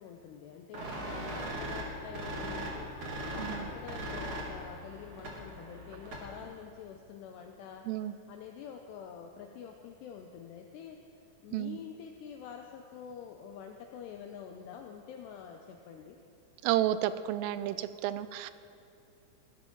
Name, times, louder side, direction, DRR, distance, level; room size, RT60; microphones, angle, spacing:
voice 1, 0.0-11.0 11.4-16.2, left 7 dB, 85° left, 3 dB, 2.4 m, -47 dB
sound 1, 0.7-6.4, equal, 60° right, 1.3 m, -39 dB
voice 2, 3.4-3.7 7.9-8.1 11.5-11.8 16.6-18.5, right 13 dB, 85° right, 14 dB, 3.1 m, -31 dB
19.5 x 11.5 x 3.9 m, 2.6 s
omnidirectional pair, 5.6 m